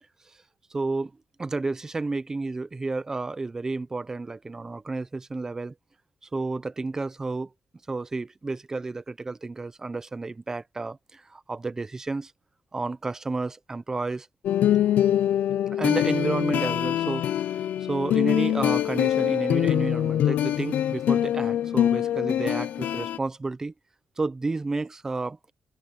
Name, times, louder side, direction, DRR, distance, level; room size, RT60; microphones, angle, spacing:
voice 1, 0.7-1.1 1.4-5.7 6.3-7.5 7.9-12.3 12.7-14.3 15.7-17.3 17.8-23.7 24.2-25.4, right 3 dB, 20° right, 0.9 m, -31 dB
sound 1, 14.4-23.2, left 11 dB, 80° left, 0.6 m, -24 dB
open air
wide cardioid pair, 150°, 3 cm